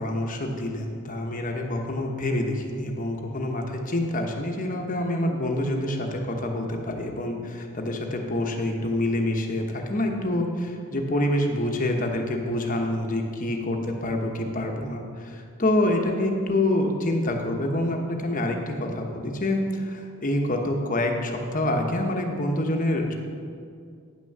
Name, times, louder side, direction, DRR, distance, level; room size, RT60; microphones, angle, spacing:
voice 1, 0.0-23.1, left 1 dB, 35° left, 2 dB, 1.1 m, -27 dB
9.8 x 6.1 x 6.7 m, 2.3 s
head